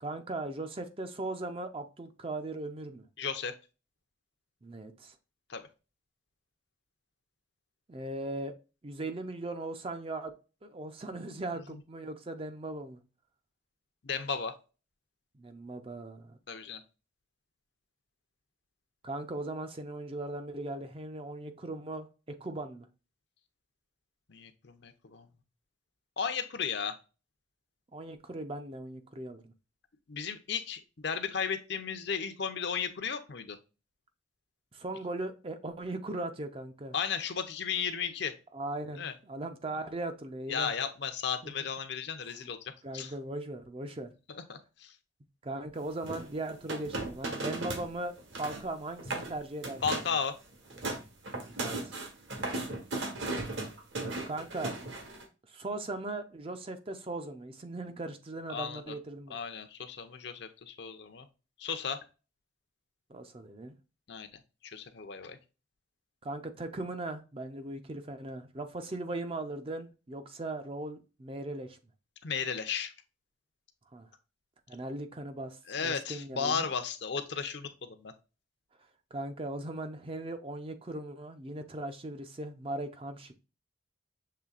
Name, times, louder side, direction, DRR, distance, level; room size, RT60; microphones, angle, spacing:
voice 1, 0.0-3.1 4.6-5.1 7.9-8.5 8.8-10.3 10.6-13.0 15.3-16.4 19.0-22.1 22.4-22.9 27.9-29.5 34.7-37.0 38.5-40.7 41.4-41.5 42.3-42.4 42.8-44.1 45.4-50.0 51.4-51.9 54.3-54.7 55.5-59.4 63.1-63.7 66.2-71.8 73.9-74.1 74.7-76.7 79.1-83.3, right 2 dB, 25° right, 0.5 m, -38 dB
voice 2, 3.2-3.5 5.5-5.6 14.0-14.5 16.5-16.8 24.3-25.3 26.2-27.0 30.1-33.6 36.9-38.4 39.0-39.1 40.5-43.1 44.5-44.9 49.8-50.3 58.5-58.8 59.3-61.3 61.6-62.0 64.1-64.3 64.6-65.4 72.2-72.9 75.7-78.1, left 6 dB, 55° left, 0.6 m, -34 dB
sound 1, 46.0-47.9 48.2-48.7 49.0-49.3 49.6-50.2 50.5-55.2, right 2 dB, 65° right, 1.3 m, -36 dB
6.7 x 3.2 x 2.4 m
head